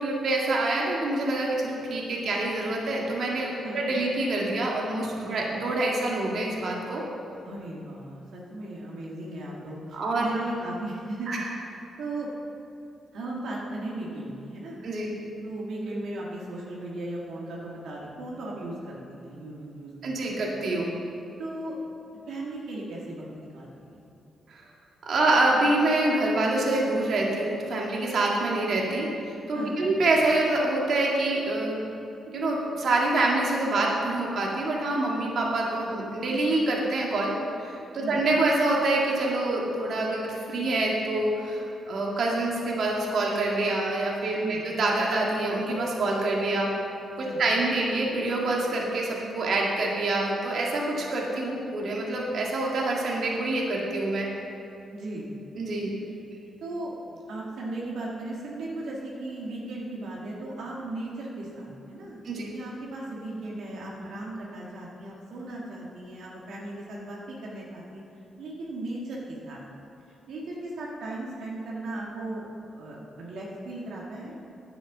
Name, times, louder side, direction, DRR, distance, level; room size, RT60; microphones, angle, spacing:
voice 1, 0.0-7.0 9.9-10.4 11.3-11.5 14.8-15.1 20.0-20.9 24.5-24.6 25.1-31.8 32.3-37.3 37.6-46.7 47.2-54.3 55.6-55.9 62.2-62.5, right 2 dB, 65° right, -2 dB, 2.0 m, -26 dB
voice 2, 7.4-11.5 12.0-12.3 13.1-14.8 15.4-20.4 21.4-21.8 22.3-24.0 29.5-29.9 38.0-38.2 44.4-44.6 47.2-47.4 54.9-55.3 56.6-68.0 68.4-69.6 70.3-74.3, right 2 dB, 80° right, -4 dB, 1.8 m, -37 dB
10.0 x 7.1 x 7.2 m, 2.8 s
cardioid pair, 100°, 0 cm